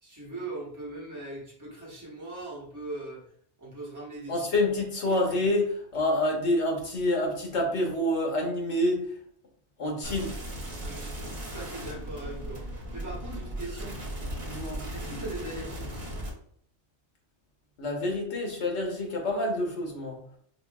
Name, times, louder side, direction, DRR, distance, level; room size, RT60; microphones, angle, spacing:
voice 1, 0.0-3.2 3.6-4.4 10.0-10.2 10.8-12.6 12.9-14.0 14.9-15.9, right 2 dB, 15° right, -4 dB, 1.1 m, -40 dB
voice 2, 4.3-9.0 9.8-10.3 14.5-14.8 17.8-20.2, left 1 dB, 75° left, 1 dB, 1.2 m, -27 dB
sound 1, 10.0-16.3, equal, 50° right, 1.4 m, -37 dB
4.8 x 2.4 x 2.2 m, 0.63 s
omnidirectional pair, 1.2 m